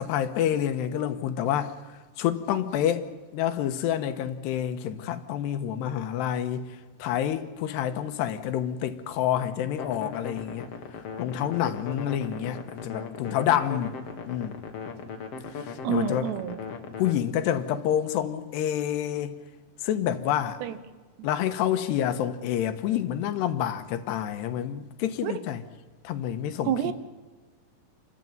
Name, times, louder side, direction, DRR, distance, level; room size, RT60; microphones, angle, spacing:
voice 1, 0.0-1.8 2.2-3.1 3.3-6.7 7.0-10.7 11.2-13.9 14.3-14.6 15.6-16.3 17.0-19.3 19.8-20.6 21.2-25.6 26.0-26.9, left 10 dB, 85° left, 3.2 m, -28 dB
sound 1, 9.8-17.1, left 5 dB, 50° left, 2.2 m, -38 dB
voice 2, 15.8-16.6 20.6-20.7 25.2-25.3 26.7-26.9, right 10 dB, 80° right, 3.3 m, -28 dB
29.0 x 13.5 x 9.2 m
omnidirectional pair, 4.9 m